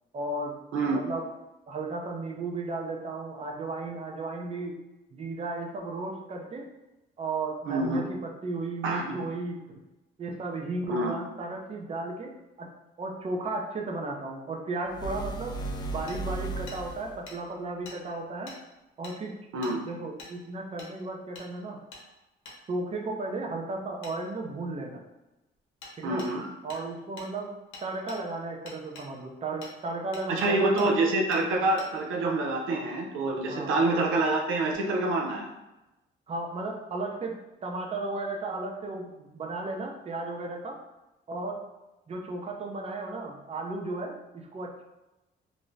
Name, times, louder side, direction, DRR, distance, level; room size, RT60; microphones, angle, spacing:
voice 1, 0.1-0.6 0.9-1.3 1.7-4.8 5.1-6.6 7.2-9.6 10.2-12.3 12.6-12.7 13.0-15.5 15.9-18.5 19.0-19.3 19.8-21.8 22.7-25.0 26.0-26.2 26.6-27.5 27.8-30.9 33.5-33.8 36.3-40.8 41.3-41.6 42.1-44.8, right 2 dB, 30° right, 0 dB, 0.5 m, -34 dB
voice 2, 7.7-8.0 8.8-9.2 10.9-11.1 19.5-19.8 26.0-26.5 30.3-35.5, right 2 dB, 85° right, 1 dB, 0.5 m, -26 dB
sound 1, 14.9-17.3, right 3 dB, 20° left, 0.3 m, -35 dB
Hammer, 16.1-16.2 16.7-16.8 17.3-17.4 17.8-18.0 18.5-18.6 19.0-19.2 19.6-19.7 20.2-20.3 20.8-20.9 21.3-21.5 21.9-22.0 22.4-22.6 24.0-24.1 25.8-25.9 26.2-26.3 26.7-26.8 27.2-27.3 27.7-28.2 28.7-29.1 29.6-29.7 30.1-30.5 30.8-30.9 31.3-31.4 31.8-31.9, left 3 dB, 75° left, 0.8 m, -45 dB
2.6 x 2.1 x 3.1 m, 0.99 s
cardioid pair, 90°, 20 cm